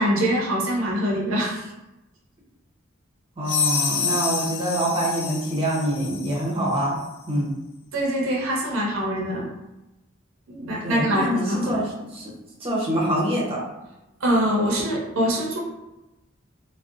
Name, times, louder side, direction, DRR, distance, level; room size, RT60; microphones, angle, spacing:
voice 1, 0.0-1.7 7.9-9.5 10.5-11.8 14.2-15.6, equal, 75° right, -2 dB, 0.5 m, -24 dB
sound 1, 3.4-6.4, left 6 dB, 70° left, 0.4 m, -27 dB
voice 2, 3.4-7.0 7.3-7.5 10.8-12.3 12.6-13.6, right 1 dB, 30° right, -5 dB, 0.7 m, -25 dB
2.6 x 2.0 x 2.4 m, 0.97 s
head